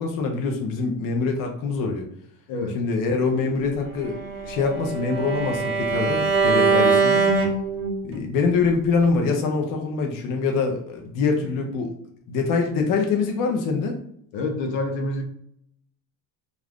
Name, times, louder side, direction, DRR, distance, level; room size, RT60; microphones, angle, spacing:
voice 1, 0.0-2.0 2.7-4.2 4.4-7.2 8.0-11.9 12.3-14.0, left 4 dB, 45° left, 0.6 m, -24 dB
voice 2, 2.5-2.8 14.3-15.2, left 2 dB, 75° left, 0.8 m, -27 dB
Bowed string instrument, 4.0-8.2, right 4 dB, 30° right, 0.6 m, -22 dB
2.4 x 2.3 x 3.5 m
cardioid pair, 120°, 45 cm